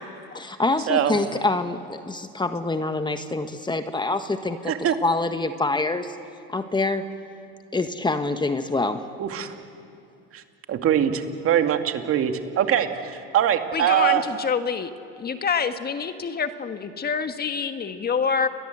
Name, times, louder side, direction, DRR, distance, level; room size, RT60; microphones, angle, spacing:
voice 1, 0.3-6.2 6.5-7.1 7.7-9.1, left 3 dB, 15° left, 9 dB, 1.4 m, -26 dB
voice 2, 9.2-9.5 10.3-10.4 10.7-14.2, right 10 dB, 50° right, 6 dB, 2.3 m, -22 dB
voice 3, 13.7-18.5, left 6 dB, 30° left, 8 dB, 1.5 m, -27 dB
29.5 x 22.0 x 8.0 m, 2.5 s
supercardioid pair, 90°, 30 cm